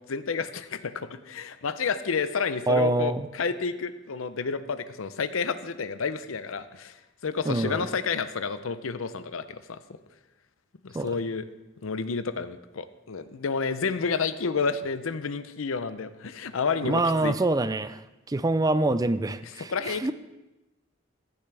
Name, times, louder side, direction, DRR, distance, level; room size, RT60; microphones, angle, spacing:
voice 1, 0.1-7.0 7.2-9.8 10.8-11.5 11.8-17.3 19.6-20.1, left 5 dB, 85° left, 12 dB, 0.6 m, -30 dB
voice 2, 2.7-3.3 7.5-7.9 10.9-11.1 16.8-18.0 18.3-20.1, right 2 dB, 20° right, 13 dB, 0.4 m, -25 dB
15.5 x 10.5 x 3.4 m, 1.0 s
head